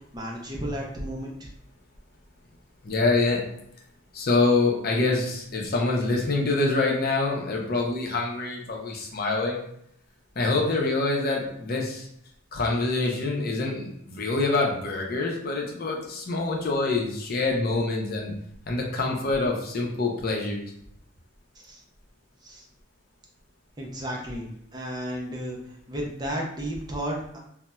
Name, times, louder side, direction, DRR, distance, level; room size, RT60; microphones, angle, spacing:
voice 1, 0.0-1.5 21.6-21.8 22.4-22.6 23.8-27.4, equal, 20° right, -2 dB, 0.5 m, -33 dB
voice 2, 2.8-3.4 4.1-9.7 10.4-12.1 12.5-18.3 18.7-20.6, left 3 dB, 50° left, 0 dB, 0.5 m, -25 dB
4.0 x 2.0 x 2.2 m, 0.71 s
head